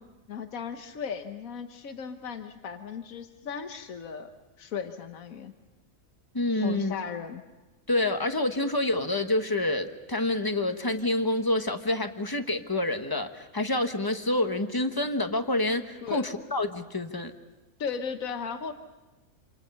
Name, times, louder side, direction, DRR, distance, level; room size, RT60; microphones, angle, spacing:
voice 1, 0.3-4.3 4.6-5.5 6.5-7.4 16.0-16.3 17.8-18.7, left 6 dB, 80° left, 7 dB, 1.6 m, -36 dB
voice 2, 6.3-6.9 7.9-17.3, left 2 dB, 15° left, 7 dB, 1.2 m, -27 dB
27.5 x 27.5 x 5.6 m, 1.1 s
omnidirectional pair, 1.4 m